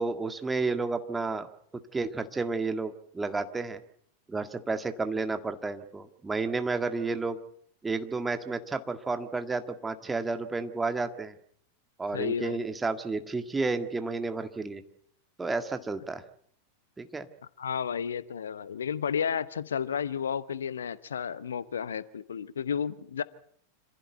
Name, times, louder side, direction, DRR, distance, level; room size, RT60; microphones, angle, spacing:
voice 1, 0.0-1.5 1.7-3.8 4.3-7.4 7.8-11.3 12.0-14.8 15.4-16.2 17.0-17.3, right 3 dB, 10° right, 8 dB, 1.8 m, -31 dB
voice 2, 12.1-12.6 17.6-23.2, left 7 dB, 65° left, 17 dB, 0.9 m, -32 dB
26.5 x 16.0 x 8.1 m, 0.65 s
figure-of-eight pair, 90°, 0 cm